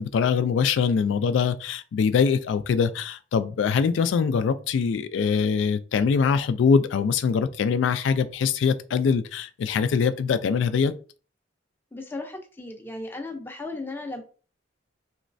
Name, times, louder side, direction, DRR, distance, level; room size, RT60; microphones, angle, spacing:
voice 1, 0.0-10.9, left 6 dB, 75° left, 0.3 m, -23 dB
voice 2, 11.9-14.2, left 2 dB, 10° left, 0.5 m, -35 dB
3.1 x 3.0 x 2.6 m
head